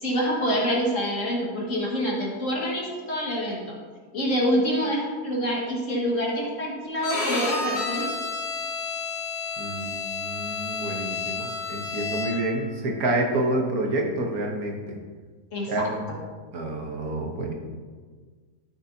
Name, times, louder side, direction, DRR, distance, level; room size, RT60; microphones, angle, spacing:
voice 1, 0.0-3.8 4.1-8.1 15.5-15.7, equal, 50° left, -3 dB, 1.9 m, -26 dB
Bowed string instrument, 7.0-12.6, left 4 dB, 75° left, 2.1 m, -30 dB
voice 2, 9.6-14.8 15.7-16.1 16.5-17.5, right 2 dB, 65° right, 1 dB, 1.6 m, -28 dB
13.0 x 6.1 x 2.8 m, 1.5 s
omnidirectional pair, 1.7 m